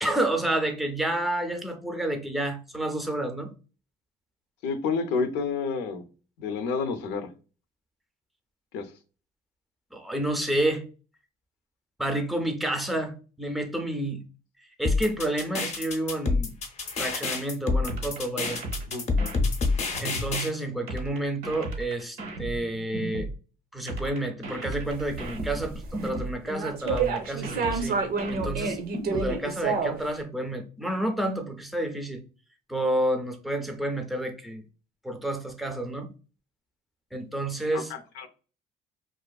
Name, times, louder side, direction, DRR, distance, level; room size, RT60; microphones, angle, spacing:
voice 1, 0.0-3.5 9.9-10.8 12.0-14.2 14.8-16.5 17.0-18.6 20.0-23.3 23.7-28.0 28.3-28.8 29.1-32.2 32.7-34.6 35.0-36.1 37.1-37.9, right 1 dB, ahead, 5 dB, 0.5 m, -29 dB
voice 2, 4.6-6.0 6.4-7.3 8.7-8.9 18.9-19.0 37.7-38.3, left 5 dB, 90° left, 7 dB, 0.5 m, -29 dB
sound 1, 14.8-20.5, left 4 dB, 40° left, 0.6 m, -27 dB
sound 2, 17.9-20.4 20.9-23.4 23.9-26.4 26.9-29.4, right 2 dB, 85° right, 0.9 m, -35 dB
sound 3, 24.9-26.1 26.5-30.1, right 4 dB, 60° right, 0.6 m, -29 dB
2.5 x 2.4 x 2.3 m, 0.35 s
cardioid pair, 110°, 17 cm